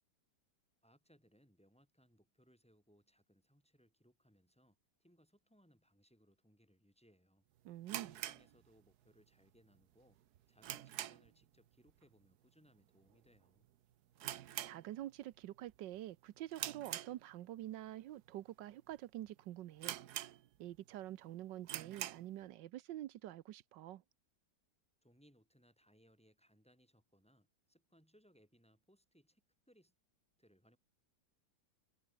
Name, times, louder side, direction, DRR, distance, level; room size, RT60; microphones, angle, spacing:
voice 1, 0.8-7.4 8.0-10.2 10.5-13.7 25.0-29.9 30.4-30.8, equal, 5° left, 7.9 m, -70 dB
voice 2, 7.6-8.2 14.3-20.0 20.6-24.0, right 13 dB, 90° right, 1.4 m, -47 dB
sound 1, 7.8-9.2 9.5-9.6 10.1-11.4 11.7-12.0 12.3-12.4 13.1-13.4 13.6-13.7 14.2-15.3 15.7-16.0 16.5-17.6 18.2-18.3 18.9-19.0 19.2-19.3 19.8-20.8 21.1-21.2 21.6-22.3, right 12 dB, 70° right, 1.3 m, -45 dB
omnidirectional pair, 1.9 m